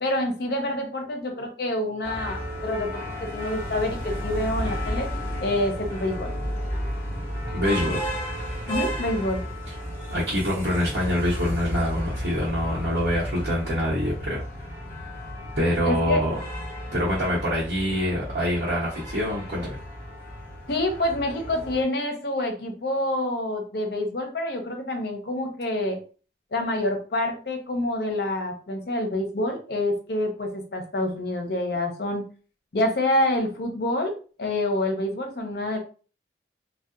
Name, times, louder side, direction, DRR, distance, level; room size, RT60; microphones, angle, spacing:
voice 1, 0.0-5.1 5.4-6.3 8.7-9.4 15.8-16.2 20.7-26.0 26.5-32.2 32.7-34.1 34.4-35.8, left 1 dB, 60° left, 4 dB, 0.6 m, -27 dB
sound 1, 2.0-21.8, equal, 20° left, 1.4 m, -33 dB
voice 2, 7.5-8.0 10.1-14.4 15.6-16.4 16.9-19.8, equal, 70° right, -7 dB, 0.9 m, -25 dB
2.7 x 2.1 x 2.4 m, 0.38 s
head